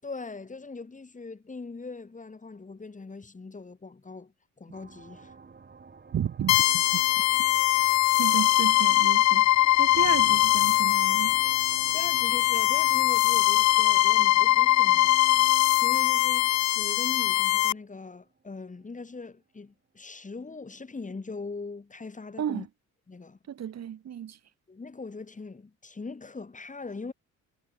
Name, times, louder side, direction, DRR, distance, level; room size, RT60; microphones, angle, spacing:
voice 1, 0.0-5.3 11.9-22.7 23.1-23.4 24.7-27.1, left 3 dB, 25° left, 5.0 m, -41 dB
sound 1, 4.7-18.9, right 5 dB, 35° right, 6.1 m, -50 dB
voice 2, 6.1-7.0 8.2-9.5 9.8-11.4 22.4-22.7 23.5-24.4, right 9 dB, 60° right, 3.0 m, -33 dB
sound 2, 6.5-17.7, left 16 dB, 65° left, 0.4 m, -22 dB
cardioid pair, 90°, 30 cm